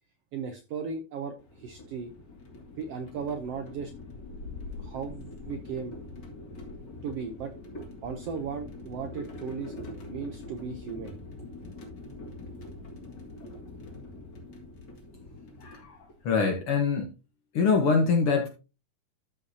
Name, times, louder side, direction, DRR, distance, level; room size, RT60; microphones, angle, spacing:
voice 1, 0.3-2.1 2.8-3.9 4.8-6.0 7.0-7.5 8.0-9.8 10.1-11.2, right 5 dB, 75° right, 6 dB, 1.5 m, -36 dB
sound 1, 1.4-16.4, left 2 dB, 35° left, 2.4 m, -44 dB
voice 2, 15.6-17.1 17.5-18.5, left 5 dB, 60° left, 4 dB, 1.6 m, -24 dB
13.5 x 5.5 x 2.7 m, 0.30 s
omnidirectional pair, 3.7 m